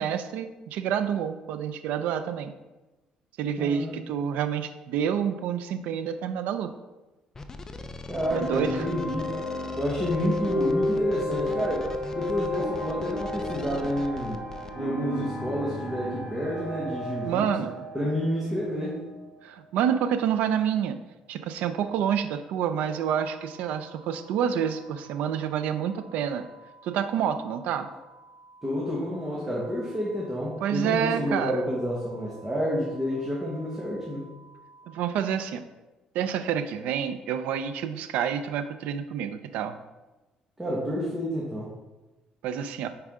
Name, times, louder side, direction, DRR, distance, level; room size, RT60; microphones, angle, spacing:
voice 1, 0.0-2.5 3.4-6.7 8.3-8.7 17.2-17.8 19.4-21.0 21.3-26.5 26.8-27.9 30.6-31.6 34.9-35.6 36.1-39.8 42.4-42.9, right 8 dB, 85° right, 10 dB, 0.5 m, -28 dB
voice 2, 3.6-3.9 8.1-9.3 9.8-14.4 14.7-17.5 17.9-19.0 28.6-34.2 40.6-41.7, equal, 10° right, -5 dB, 1.5 m, -29 dB
sound 1, 7.3-14.7, left 3 dB, 20° left, 0.6 m, -41 dB
sound 2, 8.2-19.4, left 1 dB, 60° left, 2.0 m, -32 dB
sound 3, 23.1-35.0, right 2 dB, 55° right, 1.3 m, -53 dB
8.8 x 4.7 x 3.7 m, 1.1 s
cardioid pair, 125°, 3 cm